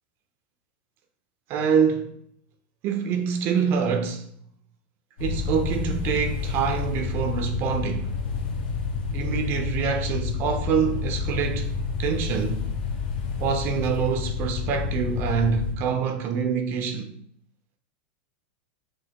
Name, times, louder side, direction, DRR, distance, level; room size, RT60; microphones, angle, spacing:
voice 1, 1.5-2.2 2.8-4.3 5.2-8.2 9.1-11.7 12.0-12.7 13.4-17.2, right 7 dB, 40° right, 0.4 m, -25 dB
sound 1, 5.2-15.7, left 5 dB, 75° left, 0.8 m, -29 dB
4.0 x 2.1 x 2.9 m
supercardioid pair, 140°, 6 cm